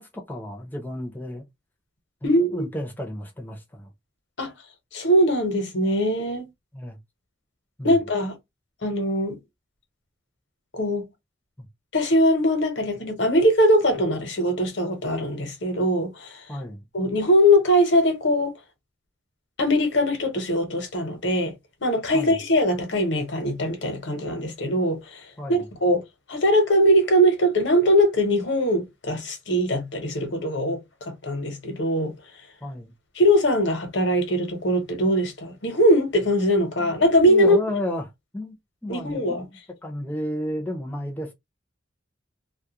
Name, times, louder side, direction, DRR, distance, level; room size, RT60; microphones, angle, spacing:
voice 1, 0.0-1.4 2.2-3.9 6.7-7.0 7.8-8.0 11.6-11.7 16.5-16.9 22.1-22.4 25.4-25.7 32.6-32.9 36.8-38.0 38.3-38.6 38.8-39.2 39.8-41.3, left 1 dB, 10° left, 0.6 m, -32 dB
voice 2, 2.2-2.7 4.4-4.5 4.9-6.5 7.8-8.4 8.8-9.4 10.7-11.1 11.9-16.4 16.9-18.5 19.6-21.5 21.8-25.2 25.5-26.0 26.3-30.8 31.1-32.1 33.2-37.6 38.9-39.4, equal, 75° left, 0.9 m, -21 dB
2.3 x 2.1 x 2.8 m
head